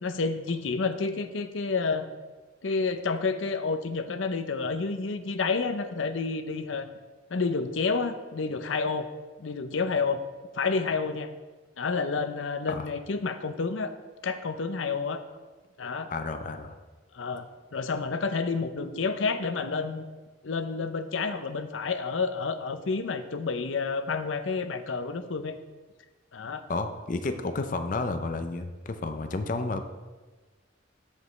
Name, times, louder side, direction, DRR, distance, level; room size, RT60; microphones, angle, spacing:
voice 1, 0.0-2.1 2.6-6.9 7.3-9.1 9.4-10.2 10.5-11.3 11.8-13.9 14.2-15.2 15.8-16.1 17.1-17.5 17.7-20.1 20.4-25.6 26.3-26.7, left 4 dB, 85° left, 10 dB, 0.6 m, -29 dB
voice 2, 16.1-16.8 26.7-29.8, left 3 dB, 45° left, 7 dB, 0.5 m, -31 dB
13.5 x 5.2 x 3.2 m, 1.3 s
head